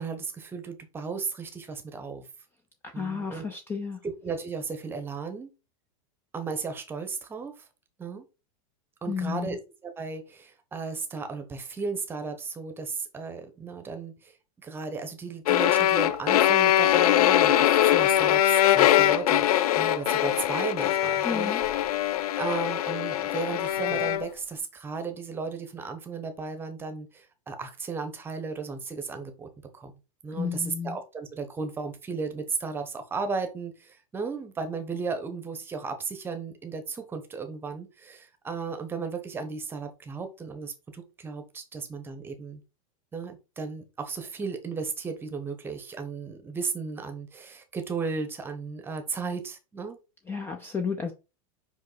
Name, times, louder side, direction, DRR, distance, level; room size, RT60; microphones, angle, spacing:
voice 1, 0.0-2.3 2.9-3.4 4.2-5.5 6.3-7.7 8.0-8.2 9.0-14.4 14.6-19.5 19.8-21.6 22.4-29.5 29.7-29.9 30.2-42.6 43.1-50.0, right 5 dB, 10° right, 0.9 m, -35 dB
voice 2, 2.8-4.0 9.1-9.6 21.2-21.6 30.3-31.0 50.3-51.1, left 5 dB, 10° left, 0.5 m, -32 dB
sound 1, 15.5-24.3, left 12 dB, 85° left, 0.6 m, -22 dB
5.3 x 5.2 x 4.0 m
supercardioid pair, 160°, 19 cm